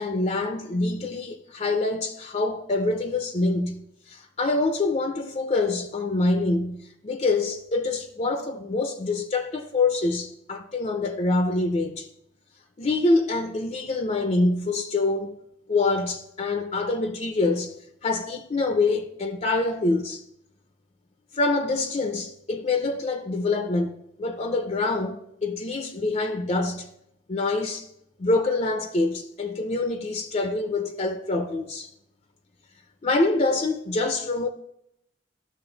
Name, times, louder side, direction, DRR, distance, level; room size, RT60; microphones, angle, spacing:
voice 1, 0.0-12.1 12.8-15.3 15.7-17.7 18.0-20.2 21.3-26.9 27.3-27.9 28.2-31.9 33.0-34.5, left 2 dB, 35° left, 0.6 m, -25 dB
12.5 x 6.5 x 3.9 m
head